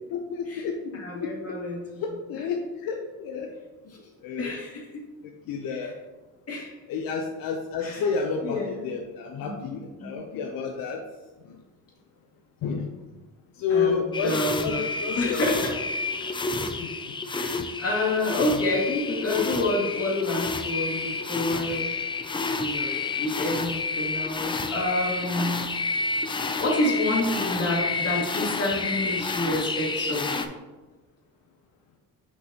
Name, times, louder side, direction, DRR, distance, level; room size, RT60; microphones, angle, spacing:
voice 1, 0.1-1.3 2.0-3.5 4.2-4.5 5.5-5.9 6.9-11.0 11.5-11.6 12.6-12.9 13.6-15.5 16.8-17.0, left 5 dB, 80° left, 2 dB, 0.7 m, -30 dB
voice 2, 0.9-1.9 2.3-2.4 4.4-4.8 5.7-5.9 6.5-6.7 7.8-8.0 8.4-8.9 9.4-9.7 10.0-10.2 13.7-14.0 14.2-15.7 17.3-21.9 22.6-25.7 26.3-30.5, left 2 dB, 45° left, -3 dB, 2.0 m, -28 dB
sound 1, 14.1-30.5, left 3 dB, 15° left, 0.3 m, -30 dB
6.5 x 5.3 x 2.9 m, 1.2 s
cardioid pair, 115°, 34 cm